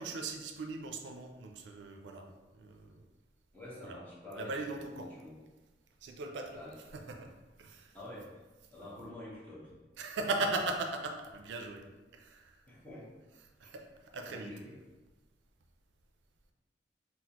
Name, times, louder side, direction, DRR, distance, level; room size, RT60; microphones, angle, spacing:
voice 1, 0.0-3.1 3.8-4.0 4.3-5.1 6.0-6.6 6.9-8.0 10.0-11.9 12.1-12.7 13.6-14.5, right 3 dB, 90° right, 4 dB, 0.4 m, -39 dB
voice 2, 3.5-5.3 6.5-6.7 7.9-8.4 8.7-9.7 12.7-13.2 14.3-14.7, left 1 dB, 10° left, -8 dB, 0.9 m, -47 dB
4.0 x 2.0 x 2.9 m, 1.2 s
head